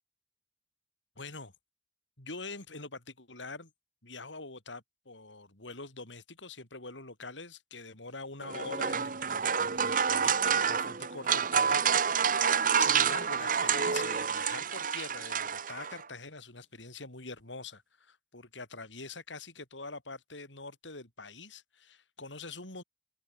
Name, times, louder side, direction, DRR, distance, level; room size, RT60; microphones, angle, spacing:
voice 1, 1.2-1.5 2.2-3.7 4.0-22.8, left 3 dB, 85° left, 7.0 m, -45 dB
sound 1, 8.4-16.0, right 6 dB, 45° right, 1.1 m, -28 dB
head